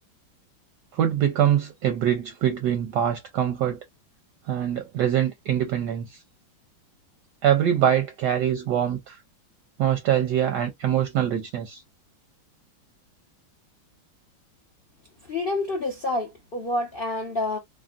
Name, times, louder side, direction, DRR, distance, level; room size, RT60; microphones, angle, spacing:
voice 1, 0.9-3.8 4.5-6.2 7.4-9.2 9.8-11.8, right 10 dB, 75° right, 1.0 m, -24 dB
voice 2, 15.3-17.6, left 2 dB, 75° left, 0.5 m, -28 dB
3.5 x 2.1 x 2.4 m
omnidirectional pair, 2.2 m